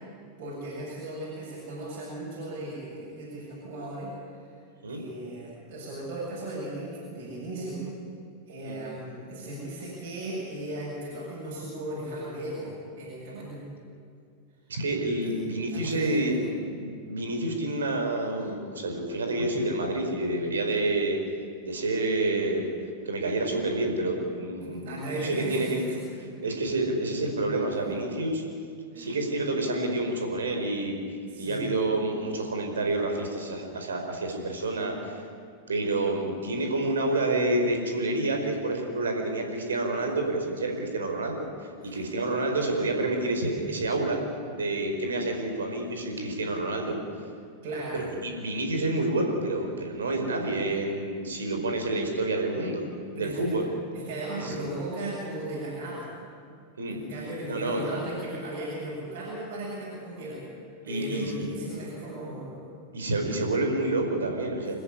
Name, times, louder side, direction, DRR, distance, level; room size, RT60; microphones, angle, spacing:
voice 1, 0.4-4.1 4.8-7.8 8.5-12.7 12.9-13.6 15.2-15.3 15.7-16.5 24.6-26.0 26.4-26.5 27.7-27.9 28.9-29.1 31.3-31.6 41.8-42.0 47.6-48.0 53.2-53.6 54.1-56.2 56.9-60.4 60.8-62.7, right 1 dB, 50° right, -6 dB, 8.0 m, -36 dB
voice 2, 14.7-21.2 21.6-22.7 23.0-25.8 26.2-28.4 28.9-31.0 31.4-35.2 35.7-44.2 44.5-47.0 47.9-52.8 53.1-53.6 54.3-54.6 56.8-57.0 57.5-57.8 60.8-61.5 62.9-64.7, right 2 dB, 70° right, 3 dB, 4.8 m, -28 dB
26.5 x 14.0 x 10.0 m, 2.3 s
figure-of-eight pair, 90°, 0 cm